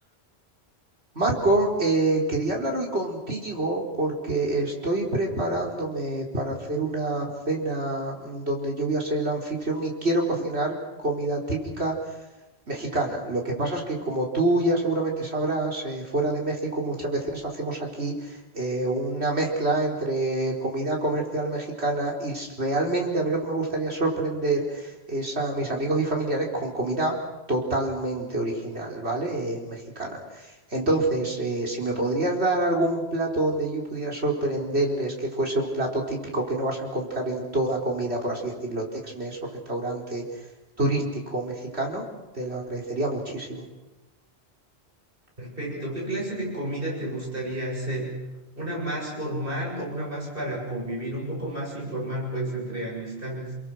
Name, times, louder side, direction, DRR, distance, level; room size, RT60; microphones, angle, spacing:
voice 1, 1.1-11.9 12.7-27.2 27.5-39.4 39.7-40.2 40.8-42.0 42.3-43.6, right 2 dB, 85° right, 0 dB, 4.5 m, -27 dB
voice 2, 45.4-48.2 48.5-53.5, right 1 dB, 60° right, -2 dB, 8.2 m, -31 dB
29.5 x 22.0 x 6.3 m, 1.1 s
omnidirectional pair, 1.1 m